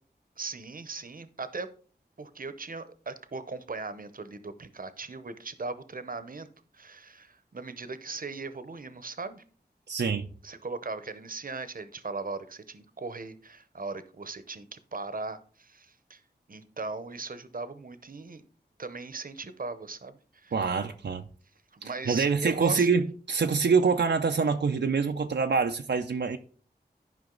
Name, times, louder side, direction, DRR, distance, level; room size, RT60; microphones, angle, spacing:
voice 1, 0.4-1.7 2.2-6.5 6.7-9.4 10.4-16.2 16.5-18.4 18.8-20.5 21.7-22.9, right 3 dB, 55° right, 0.8 m, -38 dB
voice 2, 9.9-10.3 20.5-21.3 22.1-26.4, right 5 dB, 90° right, 0.5 m, -25 dB
11.0 x 5.1 x 3.8 m
wide cardioid pair, 50°, 17 cm